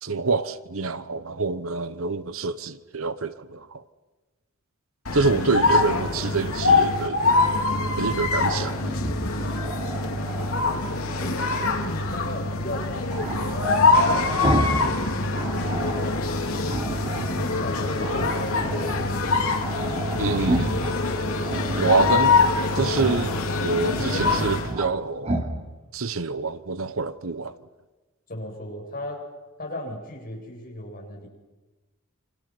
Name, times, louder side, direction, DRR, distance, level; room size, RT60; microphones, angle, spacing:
voice 1, 0.0-3.8 5.1-7.2 8.0-8.8 20.2-20.8 21.8-22.5 22.7-25.3 25.9-27.5, right 4 dB, 70° right, 1.1 m, -26 dB
sound 1, 5.0-24.7, left 3 dB, 75° left, 3.1 m, -24 dB
Growling, 8.7-10.7 13.1-14.9 15.2-16.1 16.7-17.6 18.0-19.0 19.3-19.4 19.6-20.9 21.4-22.2 22.9-23.3 23.7-24.9 25.2-25.5, right 1 dB, 30° right, 3.1 m, -30 dB
voice 2, 11.2-15.1 15.8-16.8 17.6-18.6 28.3-29.2 29.6-31.3, left 1 dB, 40° left, 7.7 m, -36 dB
28.5 x 25.5 x 6.2 m
head